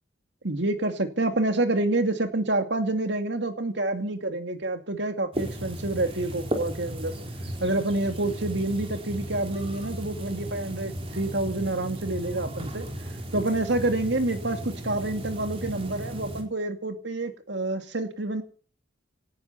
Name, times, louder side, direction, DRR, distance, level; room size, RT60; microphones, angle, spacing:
voice 1, 0.4-7.2 7.6-12.9 13.3-18.4, right 2 dB, 70° right, 6 dB, 2.5 m, -28 dB
sound 1, 5.3-16.4, right 1 dB, 30° right, 4.0 m, -35 dB
18.5 x 13.5 x 5.7 m, 0.42 s
head